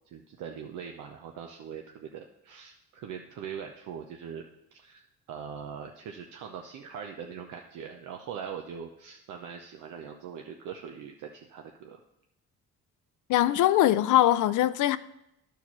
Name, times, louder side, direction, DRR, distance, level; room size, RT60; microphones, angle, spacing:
voice 1, 0.1-12.0, right 7 dB, 85° right, 0.8 m, -42 dB
voice 2, 13.3-15.0, left 13 dB, 80° left, 0.5 m, -22 dB
11.5 x 4.7 x 6.0 m
cardioid pair, 90°, 30 cm